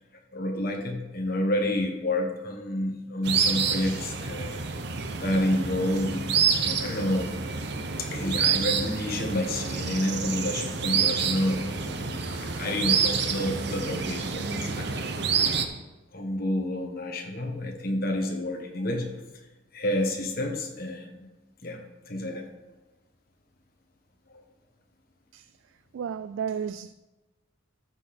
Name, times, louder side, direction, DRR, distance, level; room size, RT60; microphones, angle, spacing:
voice 1, 0.3-4.7 5.2-7.3 8.0-14.5 14.7-14.9 16.1-19.1 19.7-21.1 21.6-22.4, left 1 dB, 50° left, 1.5 m, -29 dB
sound 1, 3.2-15.6, right 6 dB, 55° right, 0.8 m, -28 dB
voice 2, 25.9-26.9, right 7 dB, 75° right, 0.3 m, -32 dB
13.5 x 6.7 x 4.3 m
head